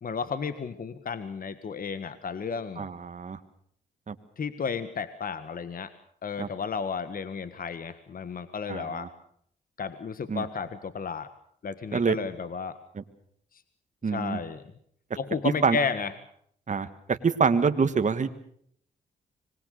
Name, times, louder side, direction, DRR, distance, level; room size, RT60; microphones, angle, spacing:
voice 1, 0.0-2.9 4.4-5.9 6.2-9.1 9.8-11.3 11.6-12.7 13.5-13.6 14.1-14.6 15.2-16.1, left 5 dB, 55° left, 12 dB, 1.6 m, -33 dB
voice 2, 2.8-3.4 4.1-4.2 6.4-6.5 8.7-9.1 10.3-10.5 11.9-12.2 13.0-13.1 14.0-14.4 15.6-15.8 16.7-18.3, right 5 dB, 45° right, 9 dB, 1.8 m, -26 dB
25.5 x 21.0 x 6.7 m, 0.66 s
cardioid pair, 65°, 18 cm